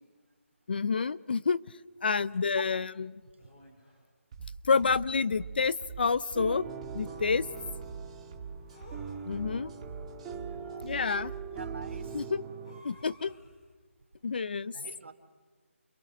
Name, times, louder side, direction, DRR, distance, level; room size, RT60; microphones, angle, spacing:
voice 1, 0.7-1.6 2.0-3.1 4.6-6.6 6.9-7.4 9.2-9.7 10.8-11.3 12.1-12.4 12.8-13.3 14.2-14.7, left 5 dB, 45° left, 18 dB, 0.7 m, -28 dB
sound 1, 2.3-2.4 3.4-4.1 5.3-6.0 8.7-9.7 12.6-13.7, equal, 30° left, 7.7 m, -56 dB
sound 2, 4.3-12.3, right 5 dB, 30° right, 1.9 m, -44 dB
sound 3, 6.3-12.8, right 6 dB, 10° right, 1.9 m, -42 dB
voice 2, 10.3-10.9 11.5-12.2 14.7-15.1, right 4 dB, 60° right, 7 dB, 3.6 m, -46 dB
29.5 x 29.0 x 6.4 m, 1.5 s
figure-of-eight pair, 165°, 7 cm